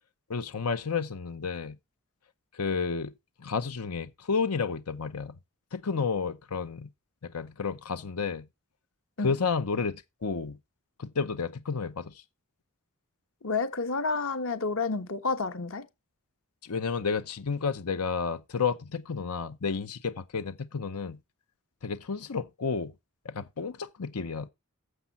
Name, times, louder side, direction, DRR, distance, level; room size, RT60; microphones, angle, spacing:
voice 1, 0.3-1.8 2.5-3.1 3.4-5.4 5.7-6.9 7.2-8.5 9.2-10.6 11.0-12.1 16.6-21.2 21.8-22.9 23.2-24.5, left 5 dB, 85° left, 0.8 m, -31 dB
voice 2, 13.4-15.9, left 4 dB, 65° left, 1.3 m, -30 dB
12.0 x 7.3 x 4.1 m
head